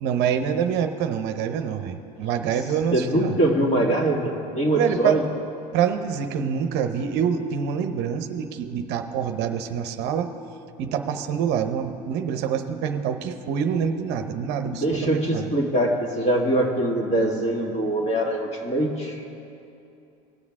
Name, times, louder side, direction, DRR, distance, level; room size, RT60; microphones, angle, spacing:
voice 1, 0.0-3.4 4.8-5.2 5.7-10.3 10.8-15.5, right 7 dB, 60° right, 7 dB, 0.8 m, -26 dB
voice 2, 2.9-5.2 14.6-19.2, right 1 dB, 35° left, 0 dB, 2.3 m, -23 dB
19.5 x 7.3 x 3.6 m, 2.7 s
supercardioid pair, 105°, 20 cm